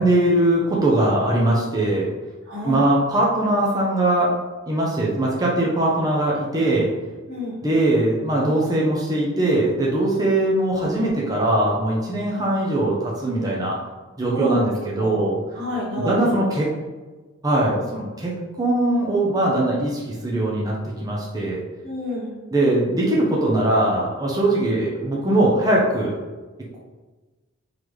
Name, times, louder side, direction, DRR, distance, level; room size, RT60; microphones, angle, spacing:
voice 1, 0.0-2.1 2.6-4.3 4.7-6.9 7.6-13.8 14.2-15.4 16.0-16.7 17.4-20.8 21.0-21.6 22.5-26.1, right 1 dB, 15° right, -4 dB, 0.6 m, -21 dB
voice 2, 2.5-2.8 7.3-7.6 14.3-14.6 15.0-15.1 15.5-16.3 21.8-22.4, left 1 dB, 50° right, -10 dB, 1.4 m, -29 dB
3.8 x 3.2 x 3.1 m, 1.3 s
head